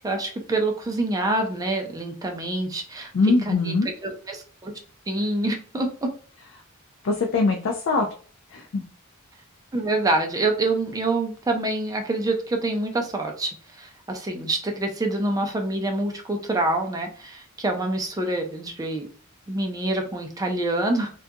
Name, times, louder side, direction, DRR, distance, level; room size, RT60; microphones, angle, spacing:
voice 1, 0.0-3.7 4.0-4.7 5.1-6.1 9.7-19.1 19.5-21.1, right 2 dB, 15° right, 3 dB, 0.4 m, -26 dB
voice 2, 3.1-3.9 7.0-8.1 8.5-8.8, left 3 dB, 55° left, 2 dB, 0.4 m, -22 dB
2.4 x 2.3 x 2.6 m, 0.42 s
head